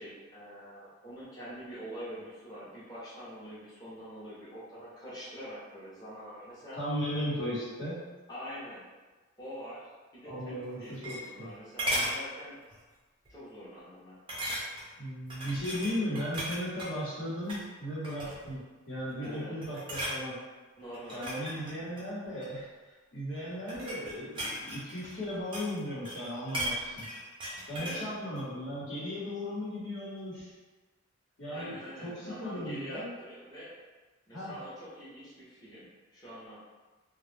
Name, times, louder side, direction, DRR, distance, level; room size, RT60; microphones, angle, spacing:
voice 1, 0.0-6.8 8.3-8.9 9.4-9.8 10.1-12.6 13.3-14.2 19.2-19.5 20.8-21.7 27.8-28.0 31.5-33.7 34.3-36.6, equal, 20° left, -9 dB, 0.7 m, -45 dB
voice 2, 6.8-8.0 10.2-11.5 15.0-18.6 18.9-20.4 21.1-22.7 23.1-27.1 27.7-30.5 31.4-33.1 34.3-34.6, equal, 60° left, -9 dB, 1.0 m, -36 dB
sound 1, 10.6-11.5 11.8-12.2 12.7-12.9 13.2-13.3 14.3-14.9 15.3-16.9 17.4-17.7 18.0-18.6 19.1-19.3 19.6-20.2 20.9-22.5 23.3-25.8 26.0-28.1 28.4-28.5, equal, 25° right, 0.4 m, -36 dB
2.3 x 2.0 x 3.2 m, 1.3 s
head